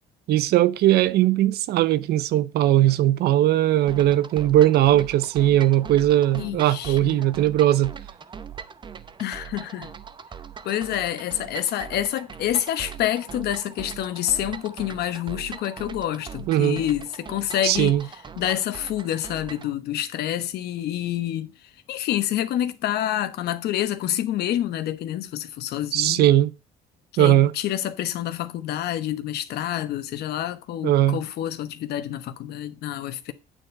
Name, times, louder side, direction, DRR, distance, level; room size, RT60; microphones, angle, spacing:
voice 1, 0.3-7.9 16.5-16.8 17.6-18.0 25.9-26.5 27.2-27.5 30.8-31.2, right 13 dB, 70° right, 0.6 m, -19 dB
sound 1, 3.9-19.7, right 7 dB, 30° right, 0.7 m, -40 dB
voice 2, 6.4-7.2 9.2-9.9 10.6-17.9 18.4-21.5 21.9-26.3 27.1-33.3, left 12 dB, 70° left, 1.1 m, -28 dB
9.0 x 4.4 x 6.5 m
cardioid pair, 110°, 17 cm